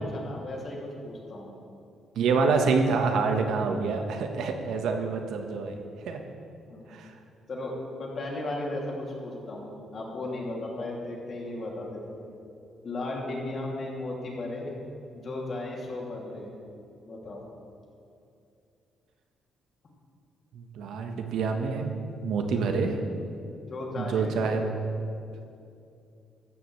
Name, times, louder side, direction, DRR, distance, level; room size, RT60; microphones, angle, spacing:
voice 1, 0.0-1.5 6.7-6.9 7.5-12.3 12.8-14.7 15.1-16.5 17.0-17.4 20.8-20.9 23.5-25.0, left 2 dB, 40° left, -2 dB, 2.5 m, -35 dB
voice 2, 2.2-6.2 6.9-7.1 20.5-23.0 24.0-24.6, right 4 dB, 80° right, 4 dB, 1.2 m, -27 dB
14.5 x 14.0 x 3.2 m, 2.6 s
cardioid pair, 135°, 0 cm